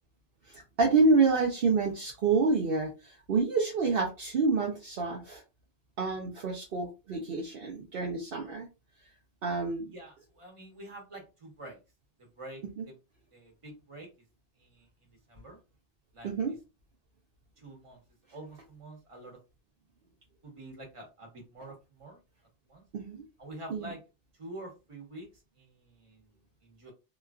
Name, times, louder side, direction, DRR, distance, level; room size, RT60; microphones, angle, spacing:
voice 1, 0.5-5.4 6.0-8.7 9.4-9.9 16.2-16.5 22.9-23.2 23.7-23.9, right 4 dB, 60° right, -1 dB, 0.8 m, -28 dB
voice 2, 9.9-11.8 12.2-12.9 13.3-14.1 14.6-15.6 16.1-16.5 17.6-18.0 18.3-19.4 20.4-22.2 22.7-22.8 23.4-24.0 24.4-25.3 25.6-26.9, right 1 dB, 30° right, 1 dB, 1.1 m, -47 dB
3.0 x 2.3 x 2.3 m, 0.28 s
omnidirectional pair, 1.1 m